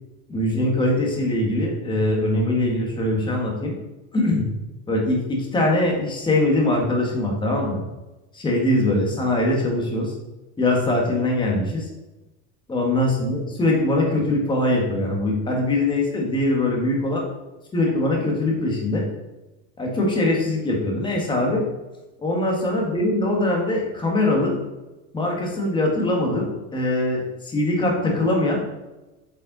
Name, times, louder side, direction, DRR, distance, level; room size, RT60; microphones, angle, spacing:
voice 1, 0.3-3.7 4.1-4.5 4.9-7.8 8.3-10.1 10.6-11.9 12.7-17.2 17.7-19.1 19.8-21.7 22.2-24.6 25.1-28.6, left 1 dB, 10° left, 0 dB, 1.4 m, -22 dB
8.6 x 5.4 x 3.9 m, 1.1 s
cardioid pair, 170°, 38 cm